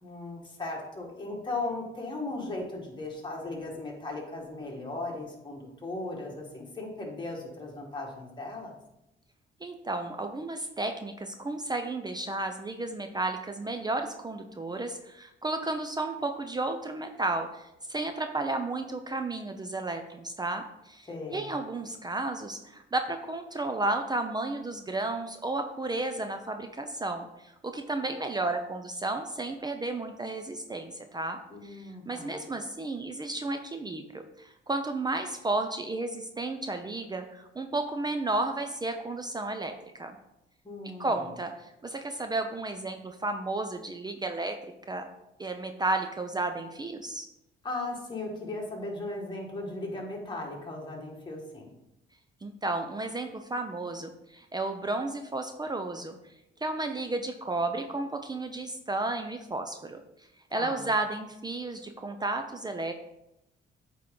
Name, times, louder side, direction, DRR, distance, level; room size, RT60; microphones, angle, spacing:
voice 1, 0.0-8.8 21.1-21.6 31.5-32.5 40.6-41.3 47.6-51.7 60.5-60.9, left 2 dB, 25° left, -2 dB, 1.8 m, -37 dB
voice 2, 9.6-39.7 40.0-40.2 41.0-44.6 44.9-45.1 45.4-47.3 52.4-56.1 56.6-60.0 60.5-62.9, right 2 dB, 20° right, 6 dB, 0.5 m, -33 dB
8.4 x 3.7 x 3.8 m, 0.87 s
cardioid pair, 90°, 20 cm